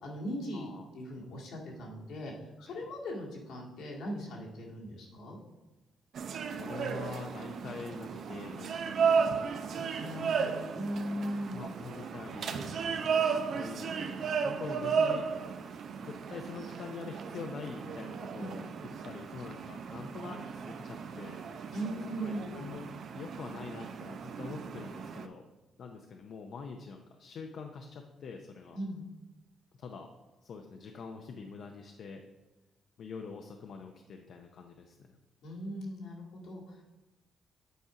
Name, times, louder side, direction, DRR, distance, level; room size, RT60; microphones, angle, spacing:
voice 1, 0.0-5.4 10.0-11.6 18.4-18.5 18.9-19.0 21.7-22.5 28.7-29.0 35.4-36.8, equal, 80° left, -3 dB, 1.9 m, -39 dB
voice 2, 0.5-0.9 2.6-2.9 6.5-10.3 10.9-11.0 11.5-15.3 16.0-18.7 19.0-21.4 22.2-22.9 23.1-25.4 25.8-28.8 29.8-30.1 30.4-32.2 33.0-35.2, left 5 dB, 60° left, 3 dB, 0.6 m, -45 dB
sound 1, 6.1-25.3, right 6 dB, 60° right, 0.6 m, -34 dB
8.3 x 4.4 x 4.8 m, 1.1 s
cardioid pair, 90°, 0 cm